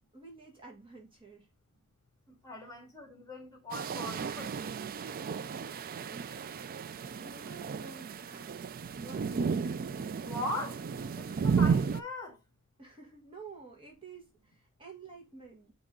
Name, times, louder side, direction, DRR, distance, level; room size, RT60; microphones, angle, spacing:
voice 1, 0.1-1.5 2.6-2.7 6.0-6.3 7.2-8.6 9.0-9.9 12.8-15.7, right 4 dB, 25° right, 1.6 m, -51 dB
voice 2, 2.4-4.6 10.2-10.8 11.1-12.4, left 1 dB, 15° left, 2.0 m, -40 dB
sound 1, 3.7-12.0, right 5 dB, 40° right, 0.4 m, -33 dB
9.0 x 3.0 x 3.7 m
head